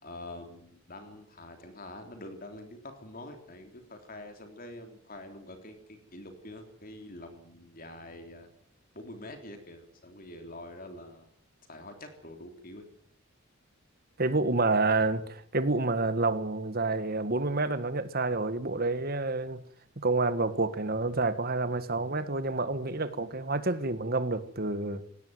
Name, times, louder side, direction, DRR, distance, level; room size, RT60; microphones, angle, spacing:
voice 1, 0.0-8.5 8.9-11.3 11.7-12.9, left 1 dB, 40° left, 3.4 m, -46 dB
voice 2, 14.2-19.6 20.0-25.0, right 3 dB, 45° right, 1.7 m, -28 dB
19.5 x 17.5 x 9.4 m
head